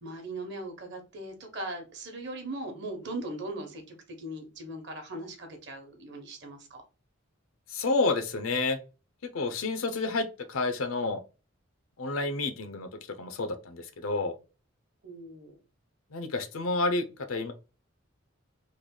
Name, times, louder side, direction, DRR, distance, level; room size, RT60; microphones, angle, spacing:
voice 1, 0.0-6.8 15.0-15.6, right 1 dB, 55° right, 4 dB, 0.9 m, -39 dB
voice 2, 7.7-8.8 9.3-11.2 12.0-12.9 13.2-14.3 16.1-17.5, left 3 dB, 85° left, 8 dB, 0.6 m, -29 dB
3.2 x 2.2 x 3.8 m, 0.33 s
head